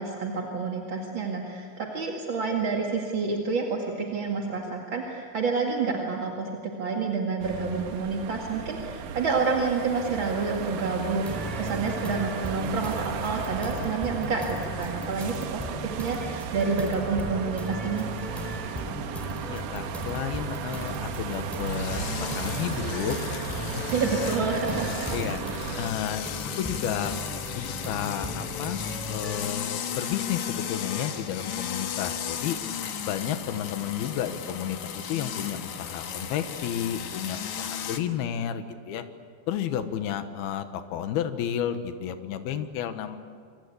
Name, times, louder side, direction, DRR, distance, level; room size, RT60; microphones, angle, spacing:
voice 1, 0.0-18.1 23.9-25.1, right 4 dB, 40° right, 0 dB, 2.1 m, -29 dB
sound 1, 7.4-25.9, right 7 dB, 65° right, 2.4 m, -35 dB
sound 2, 11.2-29.4, left 1 dB, ahead, 4.2 m, -37 dB
voice 2, 19.5-23.4 23.8-23.9 24.3-24.4 25.1-25.4 25.8-26.3 26.6-27.2 27.5-28.8 29.1-32.6 33.0-39.0 39.5-43.2, left 9 dB, 75° left, 9 dB, 3.2 m, -32 dB
sound 3, 21.6-38.0, left 8 dB, 55° left, 2.3 m, -35 dB
27.5 x 25.5 x 8.6 m, 2.1 s
omnidirectional pair, 4.6 m